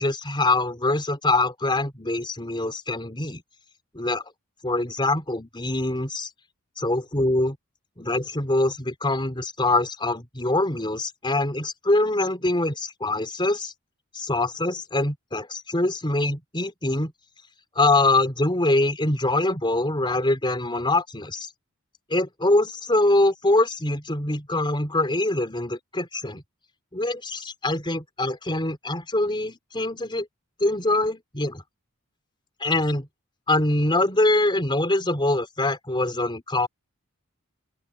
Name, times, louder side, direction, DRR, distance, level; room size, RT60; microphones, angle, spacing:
voice 1, 0.0-3.4 3.9-4.2 4.6-6.3 6.8-7.6 8.0-13.7 14.1-17.1 17.8-21.5 22.1-26.4 26.9-30.3 30.6-31.6 32.6-33.1 33.5-36.7, left 2 dB, 20° left, 4.1 m, -24 dB
open air
head